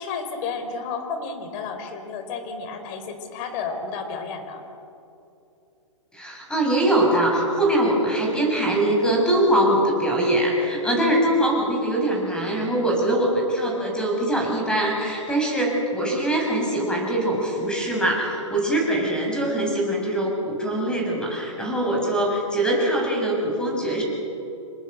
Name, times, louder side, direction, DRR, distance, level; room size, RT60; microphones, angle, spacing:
voice 1, 0.0-4.6, left 5 dB, 40° left, 7 dB, 4.4 m, -32 dB
voice 2, 6.1-24.0, right 1 dB, 5° left, 0 dB, 7.1 m, -22 dB
27.0 x 20.5 x 8.1 m, 2.7 s
hypercardioid pair, 120°, 17 cm